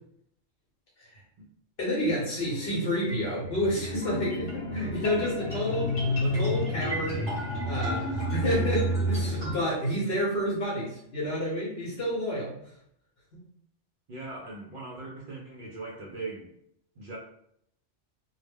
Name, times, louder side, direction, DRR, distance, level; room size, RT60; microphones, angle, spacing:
voice 1, 1.8-7.3 7.6-12.5 13.3-13.4, equal, 60° left, -4 dB, 0.9 m, -29 dB
sound 1, 2.4-9.5, equal, 25° left, 0.8 m, -30 dB
voice 2, 14.1-16.5 17.0-17.2, right 3 dB, 60° right, -2 dB, 0.6 m, -40 dB
2.2 x 2.1 x 3.3 m, 0.71 s
omnidirectional pair, 1.3 m